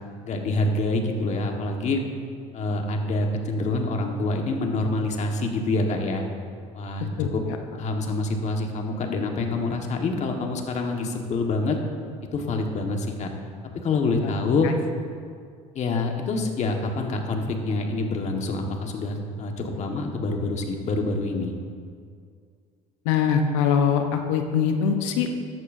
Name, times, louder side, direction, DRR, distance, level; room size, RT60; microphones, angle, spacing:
voice 1, 0.3-2.0 2.5-6.2 6.7-7.4 7.7-11.8 12.3-13.3 13.8-14.7 15.7-21.5, left 3 dB, 45° left, 2 dB, 1.6 m, -26 dB
voice 2, 23.0-25.3, left 7 dB, 85° left, 5 dB, 1.0 m, -22 dB
14.0 x 10.5 x 2.7 m, 2.2 s
supercardioid pair, 85°, 16 cm